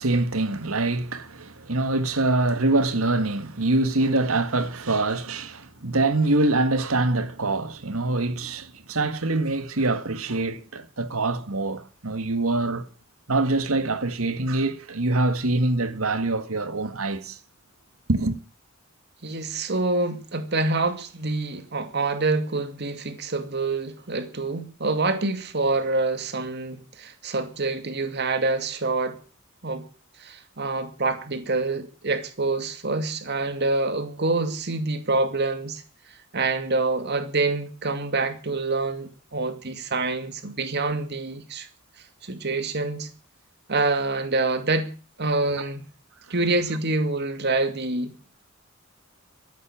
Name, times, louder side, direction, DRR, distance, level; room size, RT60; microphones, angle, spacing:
voice 1, 0.0-12.9 13.3-17.4 18.1-18.4, right 2 dB, 90° right, 1.8 m, -24 dB
voice 2, 19.2-29.2 29.6-29.8 30.2-35.8 36.3-41.7 42.2-43.1 43.7-44.9 45.2-45.8 46.3-48.1, right 3 dB, 55° right, 2.4 m, -26 dB
14.0 x 11.0 x 8.8 m
head